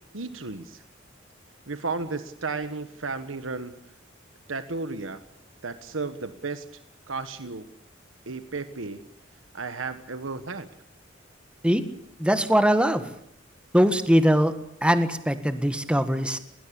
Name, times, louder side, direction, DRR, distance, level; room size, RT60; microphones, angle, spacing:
voice 1, 0.1-0.8 1.7-3.7 4.5-5.2 5.6-6.6 7.1-7.7 8.3-9.0 9.5-10.7, right 4 dB, 90° right, 11 dB, 1.3 m, -33 dB
voice 2, 12.2-13.1 13.7-14.5 14.8-16.4, equal, 5° right, 9 dB, 1.7 m, -21 dB
20.5 x 19.5 x 8.5 m, 0.71 s
head